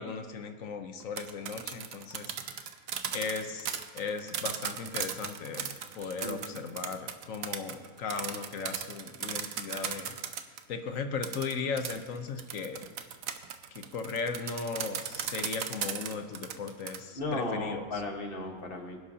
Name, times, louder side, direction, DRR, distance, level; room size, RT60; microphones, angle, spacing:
voice 1, 0.0-2.6 3.1-10.2 10.7-12.8 13.7-18.0, left 5 dB, 65° left, 7 dB, 1.2 m, -37 dB
sound 1, 1.0-10.6 11.2-17.0, right 8 dB, 70° right, 1.1 m, -37 dB
voice 2, 6.0-6.5 17.1-19.0, left 2 dB, 40° left, 2 dB, 1.7 m, -35 dB
24.5 x 11.0 x 2.8 m, 1.5 s
omnidirectional pair, 1.6 m